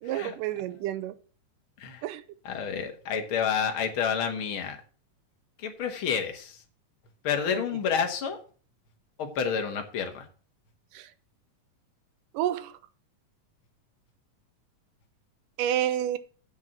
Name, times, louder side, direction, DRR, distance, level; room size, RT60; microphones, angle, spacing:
voice 1, 0.0-1.2 2.0-2.2 7.5-7.6 10.9-11.1 12.3-12.7 15.6-16.2, right 11 dB, 85° right, 12 dB, 2.2 m, -29 dB
voice 2, 2.4-4.8 5.6-6.6 7.2-8.4 9.2-10.3, left 7 dB, 50° left, 5 dB, 1.7 m, -29 dB
7.3 x 6.1 x 7.4 m, 0.40 s
omnidirectional pair, 3.7 m